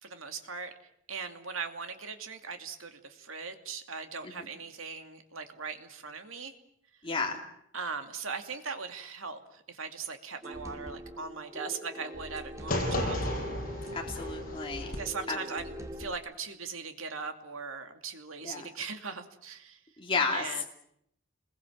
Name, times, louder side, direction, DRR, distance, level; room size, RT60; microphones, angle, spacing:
voice 1, 0.0-0.7 1.1-6.5 7.7-13.2 15.0-19.8 20.3-20.6, right 5 dB, 75° right, 6 dB, 2.6 m, -39 dB
voice 2, 7.0-7.4 13.9-15.0 15.3-15.4 18.4-18.7 20.0-20.7, left 4 dB, 25° left, 0 dB, 2.8 m, -32 dB
sound 1, 10.4-16.1, equal, 15° right, 2.4 m, -43 dB
sound 2, 12.7-15.0, left 1 dB, 40° left, 6.4 m, -33 dB
28.5 x 21.5 x 7.4 m, 0.73 s
head